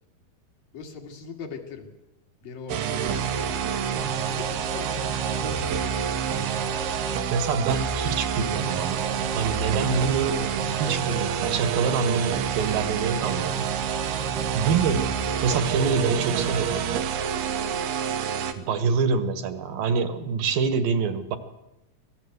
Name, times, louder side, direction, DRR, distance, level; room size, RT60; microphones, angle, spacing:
voice 1, 0.7-1.9 2.4-6.6 12.9-13.0 17.2-17.8 18.5-18.9, left 4 dB, 60° left, 3 dB, 4.0 m, -41 dB
sound 1, 2.7-18.5, right 7 dB, 85° right, 3.4 m, -27 dB
voice 2, 7.3-13.7 14.5-15.1 15.4-16.8 18.6-21.4, right 5 dB, 70° right, 10 dB, 3.0 m, -26 dB
26.0 x 18.0 x 8.0 m, 0.95 s
omnidirectional pair, 4.4 m